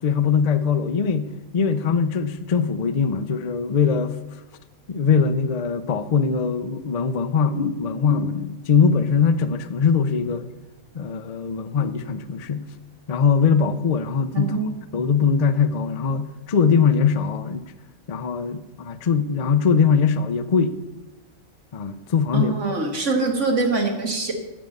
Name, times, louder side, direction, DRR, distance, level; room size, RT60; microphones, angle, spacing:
voice 1, 0.0-4.1 4.9-10.5 10.9-12.7 13.1-14.5 14.9-17.6 18.1-20.8 21.7-22.5, left 6 dB, 65° left, 0.4 m, -21 dB
voice 2, 14.3-14.8 22.3-24.3, right 3 dB, 55° right, 2.0 m, -23 dB
14.5 x 5.3 x 7.0 m
omnidirectional pair, 1.5 m